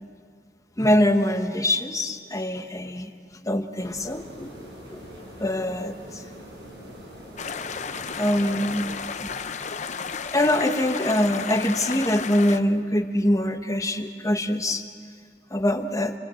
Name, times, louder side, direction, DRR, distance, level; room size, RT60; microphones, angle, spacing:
voice 1, 0.8-3.1 3.4-4.5 4.9-5.0 5.4-6.2 8.2-8.9 10.3-14.8 15.5-16.1, left 1 dB, 20° left, 6 dB, 1.2 m, -23 dB
sound 1, 3.8-9.0, equal, 80° right, 7.5 m, -43 dB
sound 2, 7.4-12.6, left 5 dB, 40° left, 0.8 m, -33 dB
28.0 x 21.0 x 7.8 m, 2.2 s
head